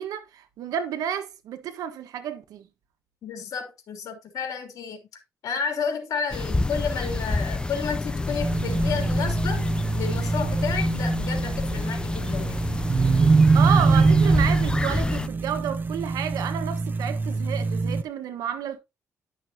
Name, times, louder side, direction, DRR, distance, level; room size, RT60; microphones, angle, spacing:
voice 1, 0.0-2.7 13.5-18.8, right 9 dB, 90° right, 1.3 m, -31 dB
voice 2, 3.2-5.0 5.4-9.6 9.9-12.6, left 6 dB, 70° left, 3.1 m, -31 dB
sound 1, 6.3-15.3, left 3 dB, 15° left, 0.5 m, -28 dB
sound 2, 8.4-18.0, right 4 dB, 30° right, 0.8 m, -23 dB
11.0 x 6.3 x 2.8 m
cardioid pair, 100°, 6 cm